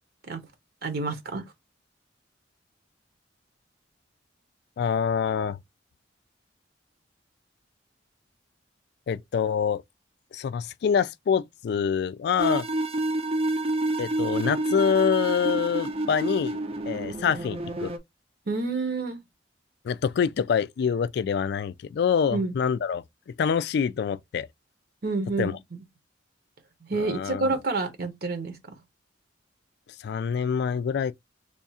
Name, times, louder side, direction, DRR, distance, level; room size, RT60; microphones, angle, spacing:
voice 1, 0.8-1.4 18.5-19.2 22.3-22.5 25.0-25.8 26.8-28.8, right 3 dB, 55° right, 0.9 m, -29 dB
voice 2, 4.8-5.6 9.1-9.8 10.3-12.6 14.0-16.6 16.9-17.9 19.8-23.0 23.4-24.5 25.4-25.6 27.0-27.4 30.0-31.1, left 7 dB, 60° left, 0.3 m, -26 dB
sound 1, 12.4-18.0, right 1 dB, 35° right, 0.5 m, -28 dB
3.4 x 2.4 x 4.1 m
head